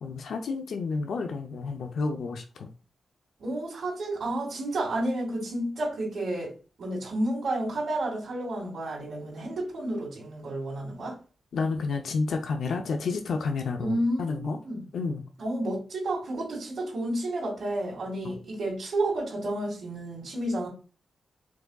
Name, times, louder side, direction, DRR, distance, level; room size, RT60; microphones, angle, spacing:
voice 1, 0.0-2.7 11.5-14.6 14.9-15.2 18.2-18.3, left 4 dB, 75° left, 0.5 m, -30 dB
voice 2, 3.4-6.5 6.8-11.2 13.8-14.9 15.4-20.7, right 1 dB, 55° right, 1.8 m, -31 dB
4.7 x 3.8 x 2.3 m
wide cardioid pair, 125°, 0 cm